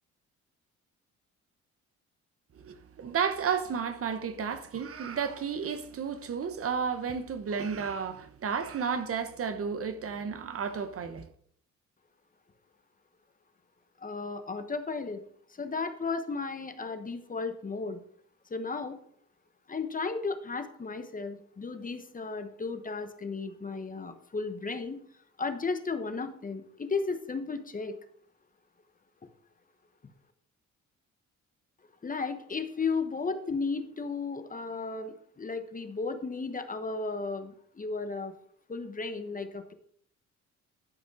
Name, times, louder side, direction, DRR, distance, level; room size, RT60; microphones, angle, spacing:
voice 1, 2.5-11.3, right 6 dB, 50° right, 1.0 m, -32 dB
voice 2, 14.0-15.2 15.5-18.0 18.5-19.0 19.7-25.0 25.4-27.9 32.0-38.3 38.7-39.7, left 4 dB, 25° left, 1.1 m, -34 dB
11.5 x 5.2 x 4.8 m
cardioid pair, 90°, 30 cm